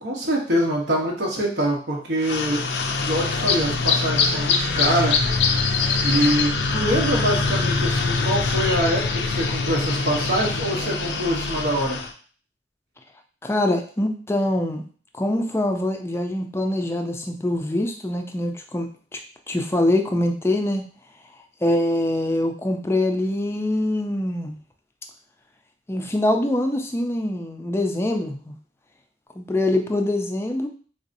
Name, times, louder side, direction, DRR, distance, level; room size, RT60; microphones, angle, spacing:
voice 1, 0.0-2.7 3.0-5.2 6.0-12.0, right 1 dB, 75° right, -1 dB, 1.0 m, -24 dB
sound 1, 2.2-12.1, left 4 dB, 80° left, 0.4 m, -23 dB
voice 2, 13.4-14.8 15.1-19.2 19.5-20.8 21.6-24.6 25.9-28.5 29.4-30.7, left 1 dB, 15° left, 4 dB, 0.4 m, -24 dB
3.8 x 2.7 x 2.6 m, 0.42 s
head